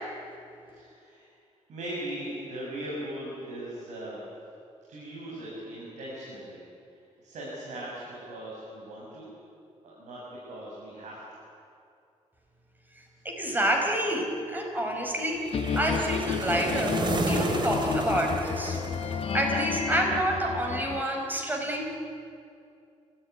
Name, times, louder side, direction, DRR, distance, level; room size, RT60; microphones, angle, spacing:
voice 1, 0.7-1.2 1.7-4.2 4.9-6.6 7.2-9.3 9.8-11.2, right 1 dB, 80° right, -6 dB, 7.8 m, -39 dB
voice 2, 13.2-15.4 15.8-17.0 17.3-21.9, right 1 dB, 15° right, 1 dB, 5.3 m, -28 dB
sound 1, 15.5-21.0, left 6 dB, 55° left, 1.5 m, -31 dB
sound 2, 15.5-19.7, right 3 dB, 40° right, 2.6 m, -32 dB
30.0 x 15.0 x 9.9 m, 2.5 s
cardioid pair, 110°, 12 cm